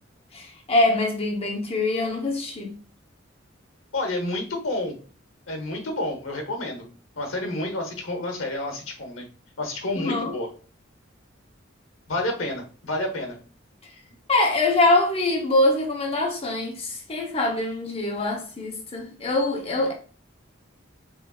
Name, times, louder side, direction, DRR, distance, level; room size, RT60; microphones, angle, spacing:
voice 1, 0.7-2.7 10.0-10.3 14.3-19.9, left 2 dB, 30° left, 0.8 m, -23 dB
voice 2, 3.9-5.0 5.5-6.8 7.2-9.3 9.6-10.5 12.1-13.4, left 1 dB, 85° left, 1.0 m, -29 dB
3.8 x 3.2 x 2.3 m
head